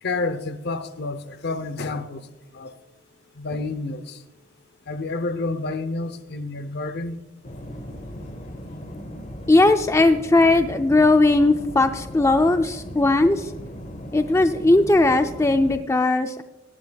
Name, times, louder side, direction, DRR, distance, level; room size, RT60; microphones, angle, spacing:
voice 1, 0.0-2.3 2.5-2.7 3.3-4.2 4.9-7.2, left 3 dB, 55° left, 0.8 m, -29 dB
sound 1, 7.4-15.8, equal, 35° left, 1.1 m, -37 dB
voice 2, 9.5-13.5 14.1-16.4, left 2 dB, 15° left, 0.4 m, -18 dB
18.0 x 11.0 x 2.3 m
head